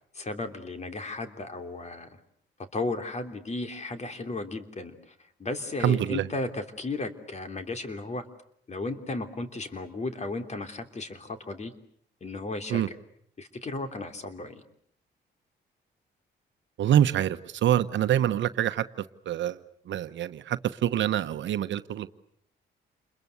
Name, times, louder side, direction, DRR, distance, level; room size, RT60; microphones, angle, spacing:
voice 1, 0.1-2.1 2.7-4.9 5.4-8.2 8.7-11.7 12.2-12.9 13.4-14.6, left 2 dB, 35° left, 3.2 m, -34 dB
voice 2, 5.8-6.3 12.7-12.9 16.8-18.8 19.3-19.6 19.9-22.1, right 11 dB, 70° right, 1.1 m, -25 dB
29.0 x 22.0 x 8.2 m
cardioid pair, 90°, 20 cm